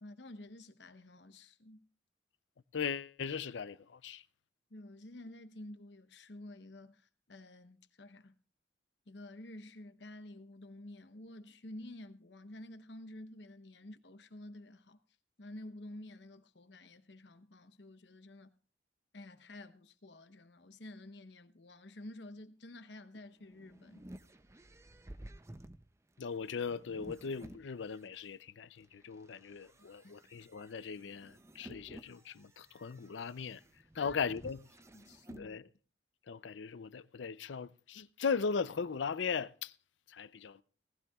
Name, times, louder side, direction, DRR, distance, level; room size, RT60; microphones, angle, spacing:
voice 1, 0.0-1.9 4.7-8.4 9.1-15.0 15.4-18.5 19.1-24.1 33.9-34.2 34.9-35.6, left 1 dB, 70° left, 0.9 m, -50 dB
voice 2, 2.7-4.2 26.2-33.6 34.0-34.6 35.4-35.7 36.3-39.7 40.1-40.6, left 5 dB, 85° left, 0.5 m, -38 dB
sound 1, 23.2-28.3 28.8-35.5, right 1 dB, 15° right, 0.5 m, -54 dB
19.0 x 15.0 x 2.4 m
head